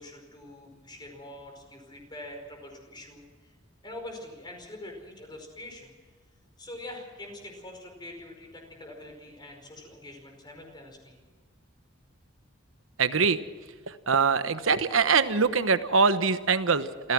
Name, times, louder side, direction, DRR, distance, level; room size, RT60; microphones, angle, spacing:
voice 1, 0.0-3.5 3.8-5.9 6.6-11.2, left 1 dB, 20° left, 3 dB, 5.0 m, -44 dB
voice 2, 13.0-13.4 13.9-17.1, right 5 dB, 90° right, 12 dB, 1.1 m, -23 dB
27.5 x 15.5 x 6.2 m, 1.4 s
head